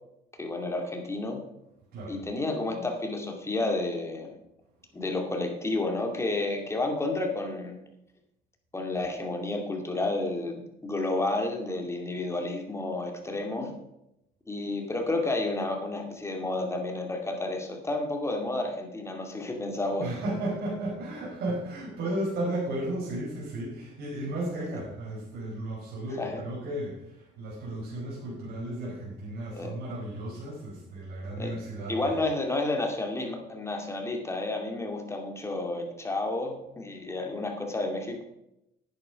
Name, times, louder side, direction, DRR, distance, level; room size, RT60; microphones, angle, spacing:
voice 1, 0.4-1.4 2.1-4.3 4.9-7.8 8.7-13.7 14.5-20.0 26.2-26.4 29.5-29.7 31.4-31.5 31.9-38.2, left 2 dB, 15° left, 3 dB, 2.4 m, -31 dB
voice 2, 20.0-32.2, right 1 dB, 65° right, -6 dB, 5.1 m, -34 dB
10.5 x 9.0 x 5.2 m, 0.85 s
cardioid pair, 110°, 17 cm